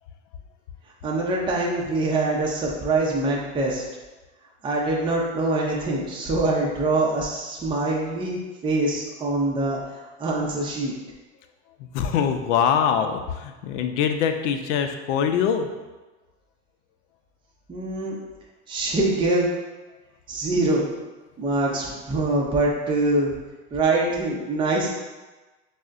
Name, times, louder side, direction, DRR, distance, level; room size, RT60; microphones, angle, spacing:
voice 1, 1.0-3.8 4.6-9.8 10.2-10.9 17.7-18.2 18.7-19.5 20.3-20.9 21.4-23.3 23.7-24.9, right 2 dB, 15° right, -3 dB, 0.5 m, -24 dB
voice 2, 11.9-15.7, left 7 dB, 75° left, 7 dB, 0.5 m, -23 dB
6.1 x 2.1 x 2.5 m, 1.2 s
supercardioid pair, 125°, 37 cm